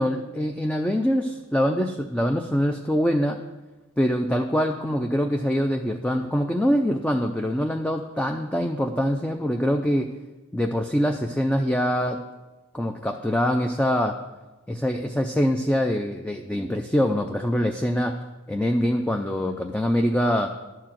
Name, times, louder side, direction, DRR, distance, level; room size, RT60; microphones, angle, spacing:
voice 1, 0.0-3.4 4.0-10.1 10.5-12.2 12.7-14.2 14.7-18.1 18.5-20.5, equal, 5° left, 4 dB, 0.4 m, -24 dB
12.0 x 4.7 x 7.4 m, 1.1 s
head